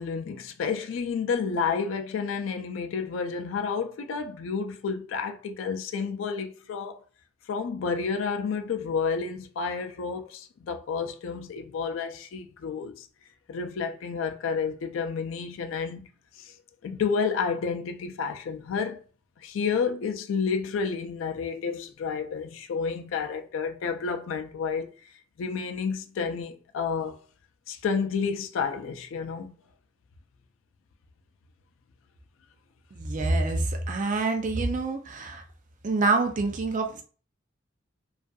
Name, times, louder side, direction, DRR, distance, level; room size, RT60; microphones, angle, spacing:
voice 1, 0.0-7.0 7.5-13.1 13.5-16.1 16.4-16.5 16.8-19.0 19.4-24.9 25.4-27.2 27.7-29.6, left 5 dB, 90° left, 0.4 m, -30 dB
voice 2, 32.9-35.4 35.8-37.0, right 3 dB, 40° right, 0.4 m, -26 dB
2.5 x 2.4 x 2.2 m
head